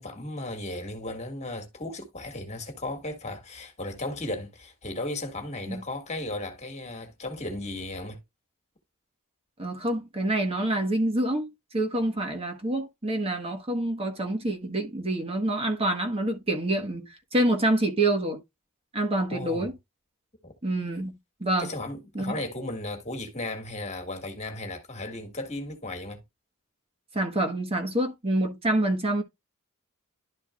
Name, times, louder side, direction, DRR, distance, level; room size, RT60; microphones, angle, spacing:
voice 1, 0.0-8.2 19.3-19.7 20.4-20.5 21.6-26.2, left 2 dB, 30° left, 1.8 m, -35 dB
voice 2, 9.6-18.4 18.9-19.7 20.6-21.1 21.4-21.7 22.1-22.3 27.1-29.2, right 1 dB, 25° right, 1.4 m, -27 dB
12.0 x 4.5 x 2.3 m
head